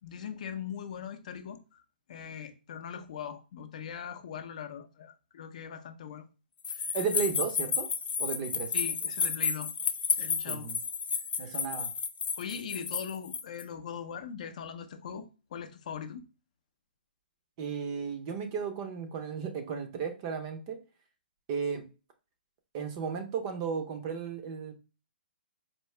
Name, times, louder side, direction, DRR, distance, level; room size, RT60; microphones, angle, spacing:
voice 1, 0.0-1.8 2.1-6.3 6.7-6.9 8.7-9.7 10.2-10.7 11.4-11.6 12.4-16.2, left 7 dB, 45° left, 0.5 m, -41 dB
sound 1, 6.6-13.6, left 6 dB, 85° left, 0.5 m, -31 dB
voice 2, 6.9-7.9 8.2-8.7 10.5-10.8 11.4-11.9 17.6-20.8 21.5-21.9 22.7-24.8, right 6 dB, 25° right, 0.6 m, -34 dB
4.4 x 2.7 x 3.1 m
hypercardioid pair, 170°, 6 cm